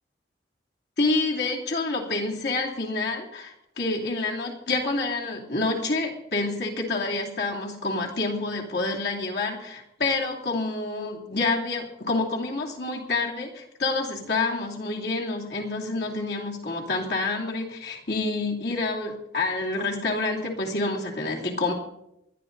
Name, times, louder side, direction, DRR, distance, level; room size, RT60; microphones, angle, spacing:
voice 1, 1.0-21.7, left 3 dB, 60° left, -1 dB, 2.9 m, -28 dB
20.0 x 11.5 x 4.0 m, 0.83 s
head